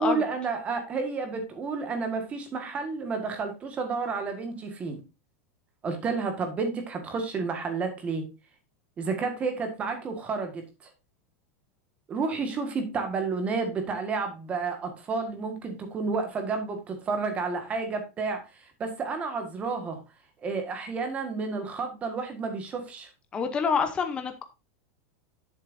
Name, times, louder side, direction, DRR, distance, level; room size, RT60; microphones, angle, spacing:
voice 1, 0.0-5.0 5.8-8.3 9.0-10.7 12.1-20.0 20.4-23.1, right 4 dB, 15° right, 1.6 m, -31 dB
voice 2, 23.3-24.4, left 6 dB, 10° left, 0.8 m, -27 dB
9.7 x 7.7 x 2.6 m
supercardioid pair, 180°, 8 cm